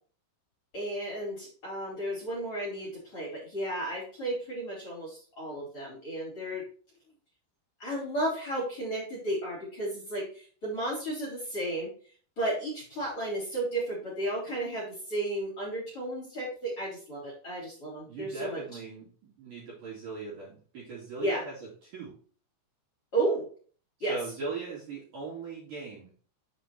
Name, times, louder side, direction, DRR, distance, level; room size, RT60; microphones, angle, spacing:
voice 1, 0.7-6.6 7.8-11.9 12.4-18.6 21.2-21.4 23.1-23.5 24.0-24.2, right 1 dB, 30° left, -3 dB, 3.5 m, -33 dB
voice 2, 18.0-22.1 24.0-26.1, right 4 dB, 45° right, -5 dB, 3.7 m, -39 dB
7.6 x 4.9 x 4.3 m, 0.43 s
omnidirectional pair, 5.8 m